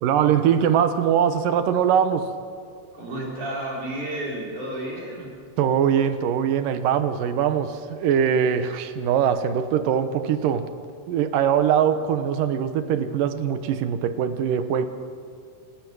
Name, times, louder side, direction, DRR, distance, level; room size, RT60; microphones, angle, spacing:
voice 1, 0.0-2.3 5.6-10.7 11.1-14.9, right 8 dB, 90° right, 10 dB, 2.8 m, -22 dB
voice 2, 2.9-5.4, right 1 dB, 65° right, -3 dB, 6.1 m, -31 dB
27.5 x 17.5 x 6.3 m, 2.3 s
omnidirectional pair, 3.7 m